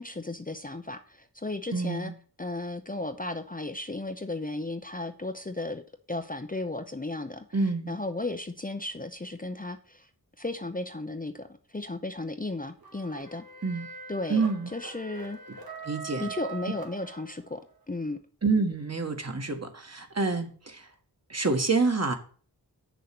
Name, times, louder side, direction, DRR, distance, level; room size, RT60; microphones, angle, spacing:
voice 1, 0.0-2.1 2.4-7.4 7.9-10.1 10.4-13.4 14.1-15.4 16.2-17.6 17.9-18.2, left 2 dB, 20° left, 7 dB, 0.7 m, -35 dB
voice 2, 1.7-2.1 7.5-7.9 13.6-13.9 14.3-14.7 15.9-16.3 18.4-20.9 21.3-22.1, right 4 dB, 40° right, 5 dB, 1.7 m, -27 dB
sound 1, 12.8-17.6, right 5 dB, 60° right, 2.4 m, -42 dB
8.2 x 6.8 x 6.0 m, 0.42 s
wide cardioid pair, 85°, 40 cm